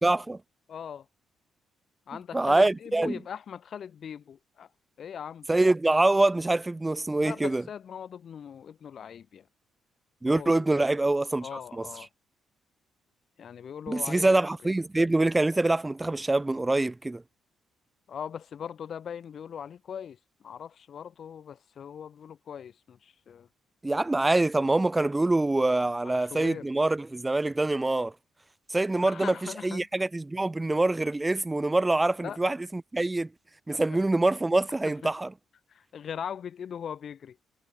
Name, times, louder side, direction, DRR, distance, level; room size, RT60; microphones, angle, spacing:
voice 1, 0.0-0.4 2.3-3.2 5.5-7.6 10.2-11.9 13.9-17.2 23.8-28.1 28.7-29.4 29.6-33.3 33.7-35.3, right 2 dB, 15° right, 0.3 m, -25 dB
voice 2, 0.7-1.1 2.1-4.7 5.0-5.5 7.2-9.5 10.3-10.7 11.4-12.1 13.4-14.3 14.6-14.7 18.1-23.5 26.0-26.6 29.0-29.9 32.2-32.4 33.7-34.0 34.8-35.1 35.7-37.4, left 8 dB, 55° left, 0.5 m, -40 dB
cardioid pair, 90°, 0 cm